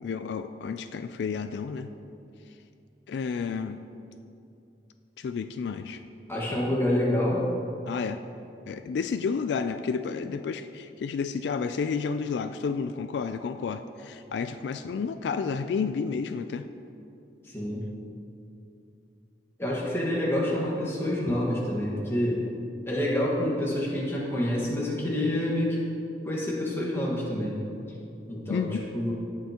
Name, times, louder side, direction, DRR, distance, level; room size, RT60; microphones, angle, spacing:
voice 1, 0.0-1.9 3.1-3.8 5.2-6.0 7.8-8.2 8.7-16.7 21.3-21.4 25.1-25.6 28.5-28.9, left 5 dB, 80° left, 9 dB, 0.3 m, -31 dB
voice 2, 6.3-7.4 17.4-17.8 19.6-22.4 22.9-25.8 26.2-27.6 28.3-29.1, left 1 dB, 15° left, -5 dB, 1.6 m, -27 dB
17.0 x 5.7 x 2.9 m, 2.6 s
head